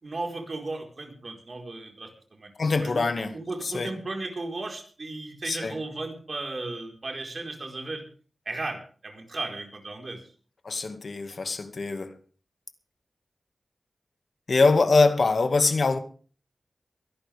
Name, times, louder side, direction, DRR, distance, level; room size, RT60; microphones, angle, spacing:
voice 1, 0.0-2.5 2.8-3.0 3.3-8.0 8.4-10.2, right 2 dB, 55° right, 4.5 m, -35 dB
voice 2, 2.6-3.3 3.6-3.9 5.4-5.7 10.6-12.2 14.5-16.0, left 3 dB, 65° left, 2.0 m, -23 dB
23.5 x 11.5 x 3.6 m
wide cardioid pair, 75°, 0 cm